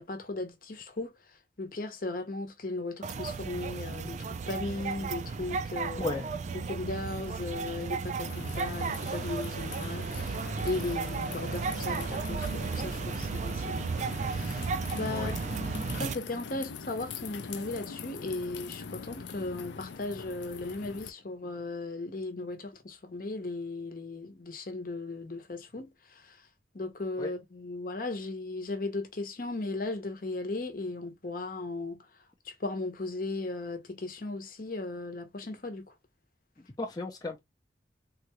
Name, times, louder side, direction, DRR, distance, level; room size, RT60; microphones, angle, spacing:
voice 1, 0.0-6.2 6.5-10.4 10.6-14.7 14.9-26.4 26.7-32.1 32.4-35.9, left 2 dB, 50° left, 0.8 m, -37 dB
sound 1, 3.0-16.1, right 4 dB, 40° right, 0.3 m, -34 dB
sound 2, 8.2-21.1, left 6 dB, 85° left, 0.5 m, -43 dB
sound 3, 8.6-13.6, right 2 dB, 65° right, 0.9 m, -47 dB
voice 2, 36.8-37.4, left 3 dB, 20° left, 0.5 m, -34 dB
3.7 x 2.3 x 2.9 m
head